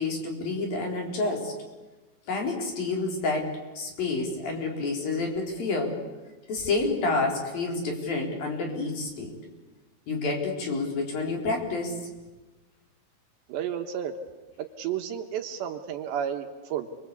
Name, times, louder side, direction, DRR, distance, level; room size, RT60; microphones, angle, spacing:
voice 1, 0.0-1.5 2.3-6.0 6.5-9.3 10.1-12.1, left 3 dB, 50° left, 1 dB, 5.4 m, -29 dB
voice 2, 13.5-14.2 14.8-16.9, right 9 dB, 70° right, 6 dB, 3.3 m, -32 dB
29.0 x 23.5 x 8.3 m, 1.2 s
omnidirectional pair, 5.5 m